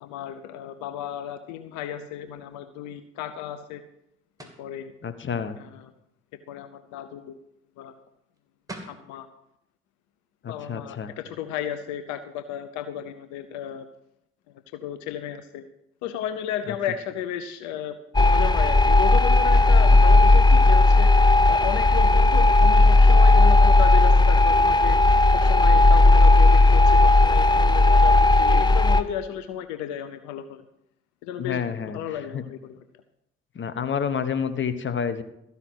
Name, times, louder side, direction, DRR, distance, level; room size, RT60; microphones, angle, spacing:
voice 1, 0.0-3.8 4.4-4.9 5.6-5.9 6.5-7.4 7.8-7.9 8.9-9.3 10.5-13.8 14.7-15.7 16.0-30.6 31.2-32.8, left 9 dB, 75° left, 10 dB, 0.7 m, -34 dB
sound 1, 4.4-4.7 8.3-8.4 8.7-9.0, right 2 dB, 10° right, 2.5 m, -40 dB
voice 2, 5.0-5.6 10.4-11.1 19.9-20.0 31.4-32.0 32.3-32.4 33.5-35.2, left 7 dB, 40° left, 11 dB, 1.1 m, -29 dB
sound 2, 18.1-29.0, left 2 dB, 15° left, 0.8 m, -15 dB
14.0 x 5.7 x 7.8 m, 0.81 s
hypercardioid pair, 50°, 29 cm